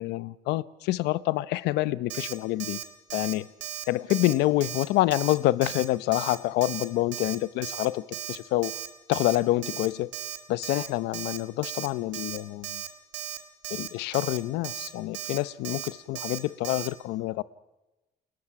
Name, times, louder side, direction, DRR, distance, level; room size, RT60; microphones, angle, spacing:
voice 1, 0.0-2.8 3.1-3.5 3.9-8.7 9.1-10.1 10.5-12.8 13.7-17.4, left 17 dB, 90° left, 0.7 m, -27 dB
Alarm, 2.1-2.3 2.6-2.8 3.1-3.3 3.6-4.3 4.6-4.8 5.1-5.3 5.6-5.8 6.1-6.4 6.6-6.8 7.1-7.3 7.6-7.9 8.1-8.4 8.6-8.9 9.1-9.4 9.6-9.9 10.1-10.4 10.6-10.9 11.1-11.4 11.6-11.9 12.1-12.4 12.6-12.9 13.1-13.4 13.6-13.9 14.1-14.4 14.6-14.9 15.1-15.4 15.6-15.9 16.1-16.4 16.6-16.9, right 11 dB, 90° right, 1.9 m, -36 dB
29.5 x 21.5 x 5.9 m
cardioid pair, 110°, 17 cm